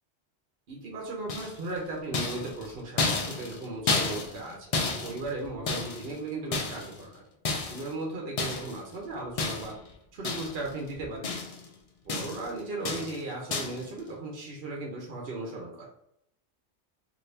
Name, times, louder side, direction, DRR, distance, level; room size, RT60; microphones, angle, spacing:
voice 1, 0.7-9.7 10.1-11.3 12.0-15.9, right 2 dB, 60° right, -1 dB, 1.0 m, -37 dB
sound 1, 1.3-1.7 2.1-4.5 4.7-6.1 6.5-7.0 7.4-7.9 8.4-8.8 9.4-9.9 10.2-10.7 11.0-11.7 12.1-12.5 12.8-13.2 13.5-13.9, left 3 dB, 55° left, 0.4 m, -31 dB
2.7 x 2.7 x 3.2 m, 0.75 s
omnidirectional pair, 1.2 m